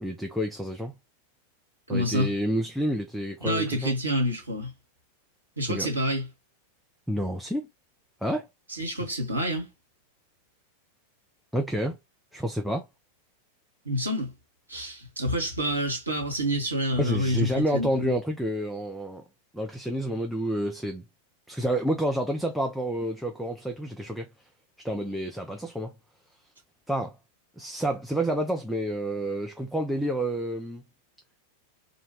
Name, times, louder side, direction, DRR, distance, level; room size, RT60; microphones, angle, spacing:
voice 1, 0.0-0.9 1.9-3.9 5.7-5.9 7.1-7.7 8.2-8.5 11.5-12.0 12.3-12.9 17.0-19.2 19.5-21.0 21.5-24.3 24.8-25.9 26.9-27.2 27.6-30.8, equal, ahead, 0.4 m, -29 dB
voice 2, 1.9-2.3 3.4-4.7 5.6-6.3 8.7-9.7 13.8-14.3 14.7-18.1, equal, 80° right, 1.0 m, -28 dB
2.6 x 2.2 x 3.0 m
figure-of-eight pair, 90°, 0 cm